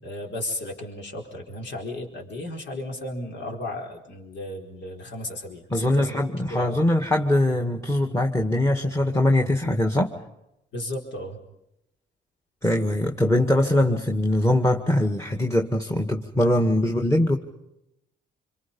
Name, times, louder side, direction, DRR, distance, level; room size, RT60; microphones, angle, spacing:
voice 1, 0.0-6.2 6.5-6.8 10.7-11.4 16.8-16.9, left 1 dB, 65° left, 1 dB, 4.6 m, -34 dB
voice 2, 5.7-10.1 12.6-17.4, left 1 dB, 15° left, 3 dB, 2.0 m, -22 dB
27.0 x 25.0 x 5.6 m, 0.86 s
cardioid pair, 90°, 20 cm